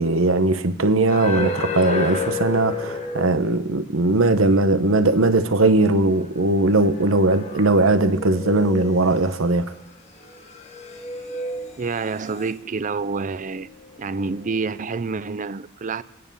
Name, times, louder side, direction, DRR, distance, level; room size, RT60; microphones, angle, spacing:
voice 1, 0.0-9.7, right 2 dB, 75° right, 1.0 m, -19 dB
sound 1, 1.1-3.8 4.1-4.2 5.9-6.0 6.6-9.6 10.2-12.5 13.4-14.0 14.3-14.6, left 4 dB, 35° left, 1.3 m, -31 dB
voice 2, 11.8-13.7 14.0-16.0, right 4 dB, 40° right, 0.5 m, -28 dB
26.5 x 9.9 x 5.5 m
head